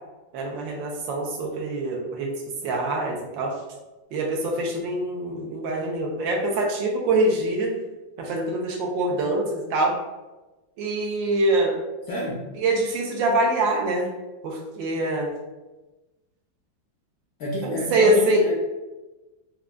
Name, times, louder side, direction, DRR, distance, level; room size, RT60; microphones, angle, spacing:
voice 1, 0.3-2.3 2.6-3.5 4.1-7.7 8.2-10.0 10.8-11.8 12.6-14.1 14.4-15.3 17.6-18.4, right 1 dB, 75° right, 0 dB, 1.3 m, -24 dB
voice 2, 12.1-12.5 17.4-18.5, left 1 dB, 75° left, -4 dB, 0.8 m, -29 dB
4.8 x 2.4 x 2.2 m, 1.1 s
omnidirectional pair, 2.2 m